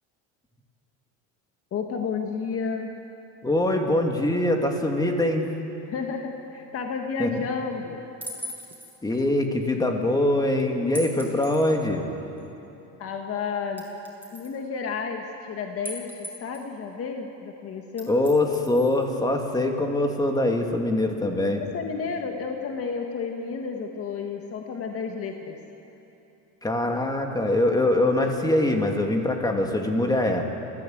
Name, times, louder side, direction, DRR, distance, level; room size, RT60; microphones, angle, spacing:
voice 1, 1.7-2.9 5.9-8.0 13.0-13.8 14.3-16.1 16.4-18.2 21.7-25.6, left 5 dB, 45° left, 3 dB, 1.8 m, -31 dB
voice 2, 3.4-5.5 7.2-7.4 9.0-12.1 18.1-21.6 26.6-30.5, left 1 dB, 10° left, 2 dB, 2.6 m, -23 dB
sound 1, 8.2-9.0 10.9-11.8 12.4-12.5 13.8-14.6 15.8-16.7 18.0-19.0, equal, 5° right, 5.3 m, -39 dB
29.5 x 14.5 x 8.0 m, 3.0 s
cardioid pair, 125°, 34 cm